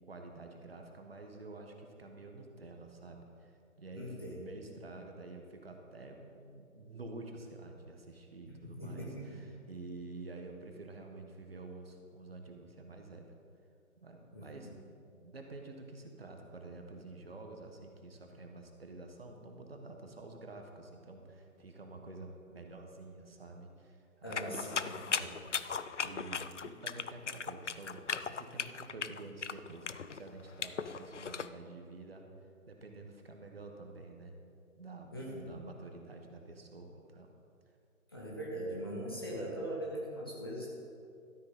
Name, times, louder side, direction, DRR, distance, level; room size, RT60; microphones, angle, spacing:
voice 1, 0.1-13.2 14.0-24.7 25.2-32.2 32.7-34.3 34.7-37.4, right 2 dB, 45° right, 3 dB, 1.4 m, -49 dB
voice 2, 3.9-4.4 8.5-9.5 14.3-14.8 24.2-25.3 35.1-35.5 38.1-40.7, equal, 15° left, -4 dB, 0.8 m, -41 dB
sound 1, 24.3-31.5, left 6 dB, 60° left, 0.5 m, -38 dB
13.0 x 12.0 x 3.8 m, 2.4 s
figure-of-eight pair, 150°, 42 cm